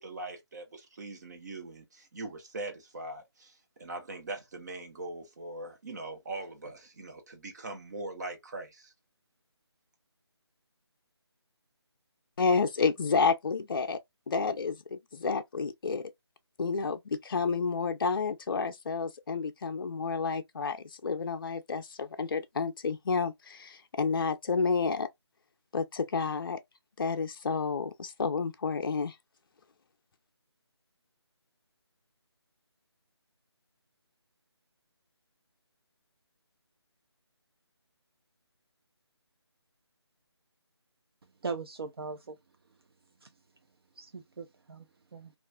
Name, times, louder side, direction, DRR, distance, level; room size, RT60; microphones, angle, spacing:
voice 1, 0.0-8.9, right 2 dB, 40° right, 1.0 m, -41 dB
voice 2, 12.4-14.0 14.3-16.1 16.6-25.1 25.7-26.6 27.0-29.2, left 4 dB, 50° left, 0.4 m, -30 dB
voice 3, 41.4-42.4 43.2-43.3 44.0-44.9 45.1-45.3, right 4 dB, 60° right, 0.5 m, -39 dB
2.4 x 2.3 x 3.3 m
figure-of-eight pair, 160°, 14 cm